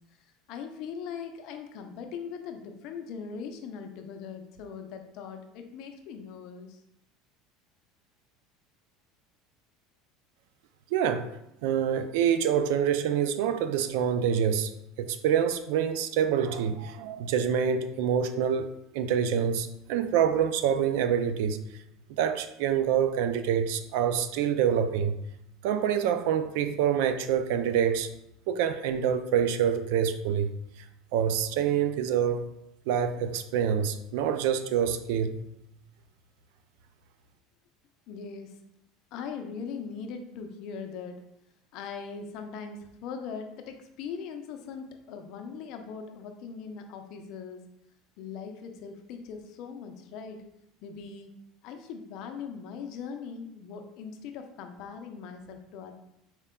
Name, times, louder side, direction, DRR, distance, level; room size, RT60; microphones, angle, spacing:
voice 1, 0.5-6.8 38.1-38.5 39.1-41.2 41.7-47.6 48.2-50.4 50.8-51.3 51.6-55.9, left 6 dB, 55° left, 0.5 m, -40 dB
voice 2, 10.9-11.4 11.6-14.7 15.0-18.7 18.9-21.6 22.2-25.1 25.6-28.1 28.5-30.5 31.1-32.5 32.9-35.4, right 8 dB, 75° right, 0.3 m, -26 dB
4.3 x 2.2 x 3.6 m
cardioid pair, 150°, 0 cm